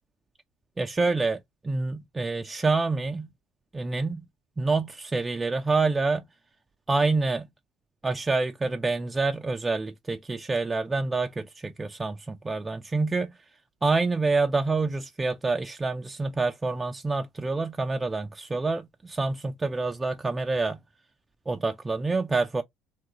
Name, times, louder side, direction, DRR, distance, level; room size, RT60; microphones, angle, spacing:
voice 1, 0.8-3.3 3.7-4.3 4.6-6.3 6.9-7.5 8.0-13.4 13.8-20.8 21.5-22.6, right 3 dB, 20° right, 0.3 m, -27 dB
2.9 x 2.4 x 2.8 m
hypercardioid pair, 65°, 0 cm